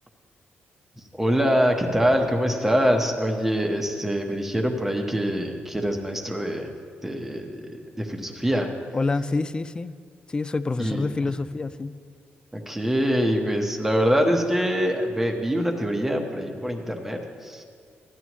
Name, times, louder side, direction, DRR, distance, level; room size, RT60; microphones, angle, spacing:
voice 1, 1.1-6.7 7.0-8.7 10.8-11.1 12.5-17.6, equal, 5° right, 3 dB, 1.1 m, -24 dB
voice 2, 8.9-9.9 10.3-12.0, left 3 dB, 20° left, 14 dB, 0.3 m, -27 dB
15.0 x 11.0 x 3.1 m, 2.1 s
cardioid pair, 110°, 4 cm